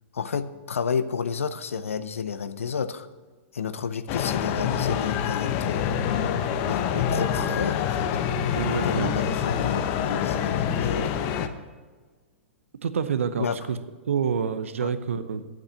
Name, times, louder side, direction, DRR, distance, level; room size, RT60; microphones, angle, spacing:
voice 1, 0.1-3.1 3.5-8.1 8.7-11.1 13.4-13.6 14.8-14.9, left 6 dB, 85° left, 13 dB, 0.6 m, -31 dB
sound 1, 4.1-11.5, left 8 dB, 45° left, 0.8 m, -26 dB
voice 2, 8.6-9.1 12.8-13.8 14.1-15.5, right 7 dB, 80° right, 12 dB, 0.8 m, -27 dB
9.0 x 7.9 x 7.1 m, 1.4 s
hypercardioid pair, 115°, 7 cm